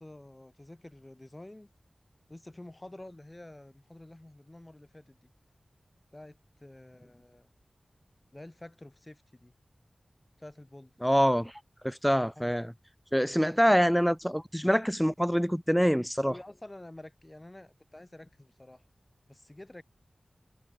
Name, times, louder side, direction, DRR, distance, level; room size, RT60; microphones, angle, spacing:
voice 1, 0.0-1.7 2.3-5.3 6.1-7.5 8.3-9.5 10.4-10.9 12.3-12.5 13.6-13.8 16.2-18.8 19.3-19.8, left 1 dB, 25° left, 4.9 m, -49 dB
voice 2, 11.0-11.5 11.8-12.7 13.1-16.4, equal, ahead, 0.8 m, -25 dB
wide cardioid pair, 75°, 0 cm